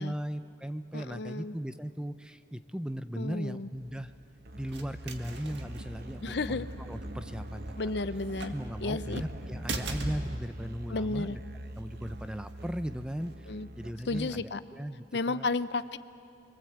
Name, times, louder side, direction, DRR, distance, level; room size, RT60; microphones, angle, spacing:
voice 1, 0.0-4.1 4.6-7.7 8.5-11.4 11.8-15.5, equal, 5° right, 10 dB, 0.5 m, -37 dB
voice 2, 0.9-1.5 3.2-3.7 6.2-6.7 7.8-8.5 8.8-9.2 10.9-11.4 13.5-13.7 14.1-14.6 15.1-16.0, left 3 dB, 65° left, 13 dB, 0.7 m, -32 dB
sound 1, 3.7-13.3, right 2 dB, 75° right, 1.9 m, -43 dB
Musical instrument, 4.4-14.6, right 1 dB, 55° right, 0.9 m, -43 dB
29.0 x 23.0 x 8.1 m, 2.8 s
head